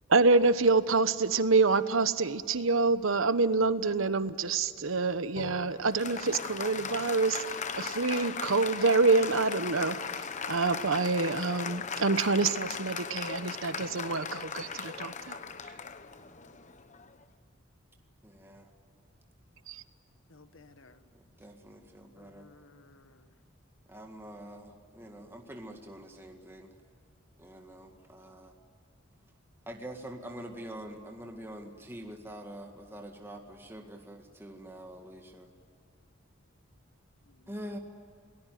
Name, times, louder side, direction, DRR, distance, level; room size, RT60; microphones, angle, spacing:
voice 1, 0.1-7.4 7.8-10.0 10.5-15.4 19.7-19.8, right 3 dB, 85° right, 12 dB, 1.1 m, -26 dB
Applause, 5.4-17.2, left 5 dB, 35° left, 1.1 m, -38 dB
voice 2, 18.2-18.7 21.1-22.5 23.9-26.8 27.4-28.5 29.7-35.5 37.5-37.8, right 1 dB, 10° right, 2 dB, 1.9 m, -45 dB
voice 3, 20.3-21.0 22.2-23.3 37.3-37.6, left 3 dB, 75° left, 10 dB, 1.5 m, -57 dB
28.5 x 19.5 x 9.4 m, 2.4 s
head